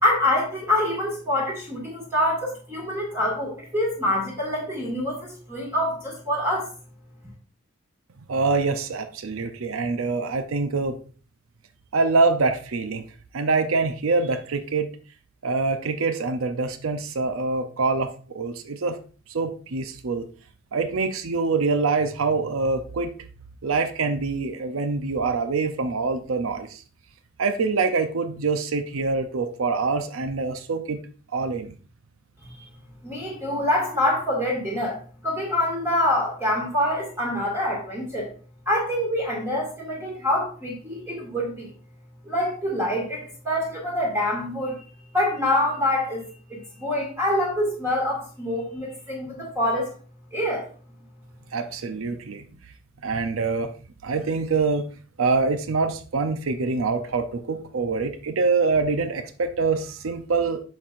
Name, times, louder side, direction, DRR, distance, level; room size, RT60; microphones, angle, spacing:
voice 1, 0.0-6.7 32.6-32.7 33.0-38.3 38.7-41.7 42.3-44.8 45.1-46.2 46.5-49.9 50.3-50.6, left 1 dB, 10° right, -3 dB, 2.0 m, -25 dB
voice 2, 8.3-11.0 11.9-13.0 13.3-14.9 15.4-19.0 19.3-20.3 20.7-23.1 23.6-26.8 27.4-31.0 31.3-31.8 51.5-52.4 53.0-53.7 54.0-54.9 55.2-60.6, right 4 dB, 85° right, 9 dB, 0.6 m, -25 dB
8.4 x 6.1 x 2.5 m, 0.39 s
head